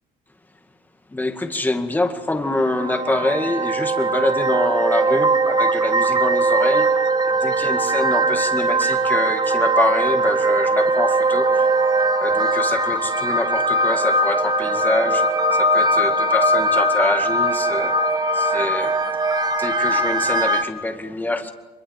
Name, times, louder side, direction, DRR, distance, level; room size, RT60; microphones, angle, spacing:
voice 1, 1.1-19.2 19.6-21.5, left 2 dB, 10° left, 5 dB, 2.1 m, -25 dB
sound 1, 2.5-20.6, right 2 dB, 25° right, 1.8 m, -20 dB
24.0 x 23.0 x 7.5 m, 1.1 s
cardioid pair, 110°, 17 cm